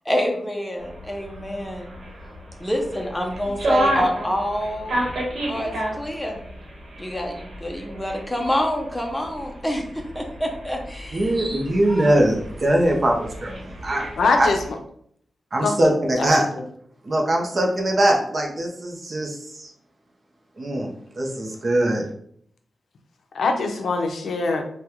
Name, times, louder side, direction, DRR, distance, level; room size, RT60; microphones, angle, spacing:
voice 1, 0.0-1.9 2.6-5.1 5.5-6.4 7.0-11.3, equal, 10° left, 1 dB, 0.6 m, -27 dB
sound 1, 0.8-14.7, right 1 dB, 75° right, 1.0 m, -31 dB
voice 2, 11.1-14.1 14.4-14.5 15.5-16.5 17.0-19.7 20.6-22.0, right 1 dB, 40° right, 0 dB, 0.6 m, -21 dB
voice 3, 14.2-14.6 15.6-16.3 23.3-24.6, left 3 dB, 90° left, 4 dB, 0.4 m, -23 dB
3.5 x 2.2 x 2.9 m, 0.65 s
wide cardioid pair, 135°, 0 cm